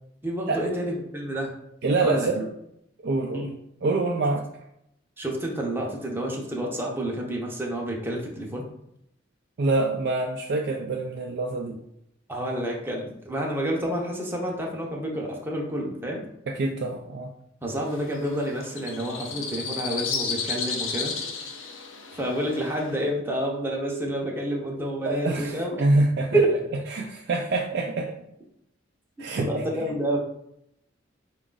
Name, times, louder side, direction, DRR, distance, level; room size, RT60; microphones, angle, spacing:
voice 1, 0.2-1.5 2.0-2.3 3.3-3.5 5.2-8.6 12.3-16.2 17.6-21.1 22.1-25.8 26.3-26.6 29.4-30.2, right 1 dB, 10° right, -1 dB, 0.7 m, -29 dB
voice 2, 1.8-2.5 3.0-3.5 3.8-4.4 9.6-11.8 16.5-17.3 25.0-26.4 26.9-28.1 29.2-29.5, right 2 dB, 55° right, 1 dB, 0.4 m, -25 dB
sound 1, 17.8-23.0, left 5 dB, 80° left, 0.6 m, -33 dB
4.7 x 2.4 x 3.8 m, 0.77 s
head